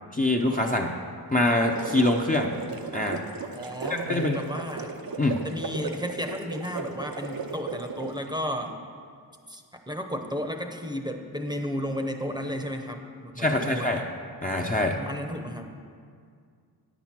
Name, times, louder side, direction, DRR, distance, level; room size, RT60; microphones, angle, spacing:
voice 1, 0.1-0.9 1.3-2.5 2.9-3.2 3.9-4.4 5.2-5.4 13.4-14.0 14.4-15.0, left 1 dB, 20° left, 0 dB, 0.6 m, -24 dB
sound 1, 1.5-8.3, right 5 dB, 60° right, 0.7 m, -36 dB
voice 2, 3.5-5.0 5.4-8.8 9.5-14.0 15.0-15.8, equal, 10° right, 4 dB, 0.8 m, -33 dB
9.7 x 6.1 x 7.3 m, 2.2 s
wide cardioid pair, 70°, 41 cm